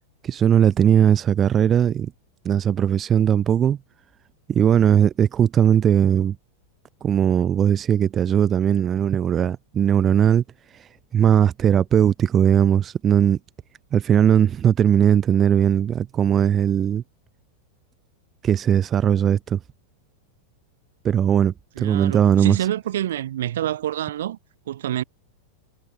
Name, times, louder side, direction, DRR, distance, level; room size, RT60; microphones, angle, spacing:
voice 1, 0.2-2.1 2.4-3.8 4.5-6.4 7.0-10.4 10.7-13.4 13.9-17.0 18.4-19.6 21.0-22.6, right 9 dB, 25° right, 0.4 m, -19 dB
voice 2, 21.8-24.4 24.7-25.0, right 12 dB, 60° right, 0.7 m, -27 dB
figure-of-eight pair, 90°, 0 cm